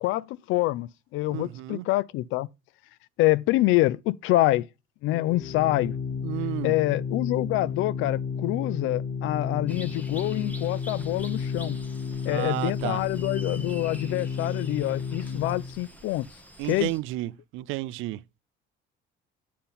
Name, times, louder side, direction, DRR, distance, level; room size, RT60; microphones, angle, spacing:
voice 1, 0.0-2.5 3.2-4.7 5.0-6.0 6.6-11.8 12.3-16.3 16.6-16.9, left 17 dB, 70° left, 0.4 m, -26 dB
voice 2, 1.3-1.9 6.2-6.7 12.3-13.0 16.6-18.2, right 17 dB, 70° right, 0.5 m, -32 dB
Organ, 5.1-15.8, left 5 dB, 55° left, 0.8 m, -32 dB
sound 1, 9.7-17.0, equal, 5° left, 1.1 m, -47 dB
8.4 x 5.6 x 4.0 m
cardioid pair, 125°, 21 cm